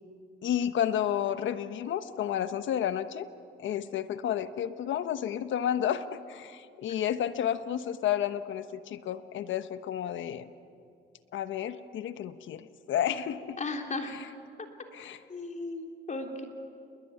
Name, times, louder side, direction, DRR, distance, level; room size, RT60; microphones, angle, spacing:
voice 1, 0.4-3.3 3.6-10.5 11.3-13.6 14.1-14.3 14.9-15.2, left 10 dB, 75° left, 11 dB, 1.2 m, -31 dB
voice 2, 13.6-14.1 15.3-16.4, left 3 dB, 35° left, 3 dB, 3.5 m, -35 dB
29.5 x 21.5 x 9.4 m, 2.4 s
cardioid pair, 90°, 20 cm